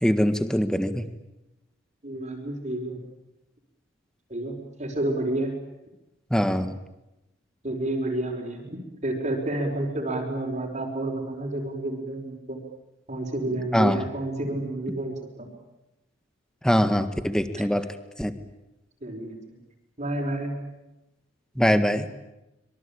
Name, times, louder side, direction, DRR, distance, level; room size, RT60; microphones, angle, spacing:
voice 1, 0.0-1.1 6.3-6.7 13.7-14.0 16.6-17.8 18.2-18.3 21.6-22.0, equal, 5° left, 9 dB, 1.7 m, -22 dB
voice 2, 2.0-3.0 4.3-5.5 7.6-12.6 13.1-15.5 19.0-19.6 20.0-20.5, right 1 dB, 35° right, -1 dB, 5.1 m, -30 dB
25.5 x 24.0 x 8.8 m, 0.95 s
head